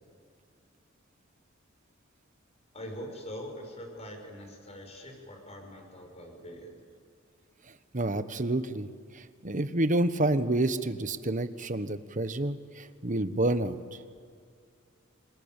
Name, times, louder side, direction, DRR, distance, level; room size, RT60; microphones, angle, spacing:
voice 1, 2.7-6.8, equal, 30° left, 3 dB, 5.6 m, -43 dB
voice 2, 7.9-8.9 9.1-13.8, right 2 dB, 40° right, 11 dB, 1.2 m, -29 dB
27.0 x 21.5 x 9.0 m, 2.1 s
head